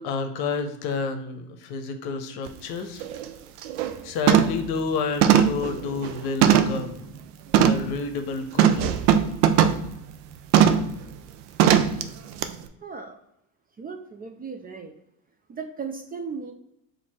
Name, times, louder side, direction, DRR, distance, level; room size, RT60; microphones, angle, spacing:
voice 1, 0.0-3.0 4.0-7.1 7.6-9.0, left 4 dB, 60° left, 7 dB, 0.8 m, -30 dB
sound 1, 2.5-2.6 3.0-3.3 3.6-3.9 4.3-4.7 5.2-6.9 7.5-7.9 8.6-9.9 10.5-10.9 11.6-12.0 12.4-12.5, right 9 dB, 85° right, 0.5 m, -19 dB
voice 2, 12.8-13.2 13.8-14.9 15.5-16.5, right 5 dB, 20° right, 5 dB, 0.4 m, -36 dB
4.2 x 2.7 x 4.4 m, 0.81 s
hypercardioid pair, 80°, 44 cm